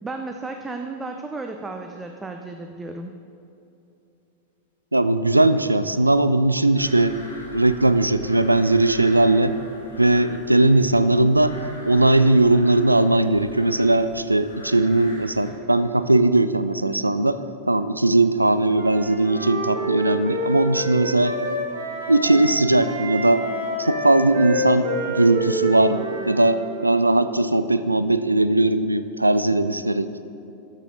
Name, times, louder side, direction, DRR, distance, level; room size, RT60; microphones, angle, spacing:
voice 1, 0.0-3.1, right 3 dB, 15° right, 5 dB, 0.5 m, -33 dB
voice 2, 4.9-7.1 7.5-9.6 10.0-11.6 11.9-17.4 17.7-21.3 22.1-23.4 23.8-30.2, right 2 dB, 85° right, 13 dB, 0.3 m, -19 dB
sound 1, 6.8-15.5, equal, 75° left, 1.2 m, -44 dB
Wind instrument woodwind instrument, 18.7-22.5 22.8-26.9, equal, 60° right, 1.4 m, -28 dB
13.0 x 6.1 x 3.9 m, 2.8 s
figure-of-eight pair, 90°, 0 cm